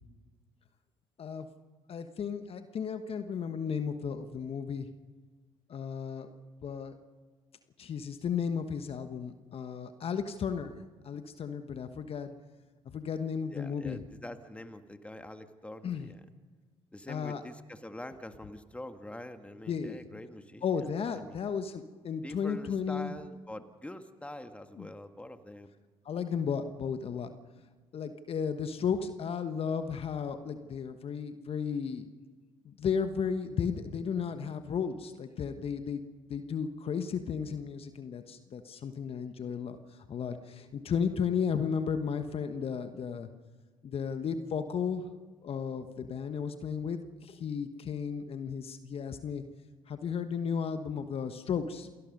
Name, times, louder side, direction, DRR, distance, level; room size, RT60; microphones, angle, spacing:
voice 1, 1.9-4.9 5.7-6.3 6.6-7.0 7.8-12.3 12.9-14.0 15.8-16.1 17.1-17.4 19.7-20.0 20.6-23.1 24.8-24.9 26.0-27.3 27.9-32.1 32.6-36.0 36.3-39.8 40.1-43.3 43.8-45.1 45.4-49.4 49.9-51.9, left 6 dB, 45° left, 9 dB, 1.3 m, -34 dB
voice 2, 13.5-16.2 16.9-20.6 21.0-21.4 22.2-25.7, left 1 dB, 10° left, 8 dB, 1.8 m, -45 dB
28.0 x 19.0 x 5.4 m, 1.4 s
hypercardioid pair, 55°, 13 cm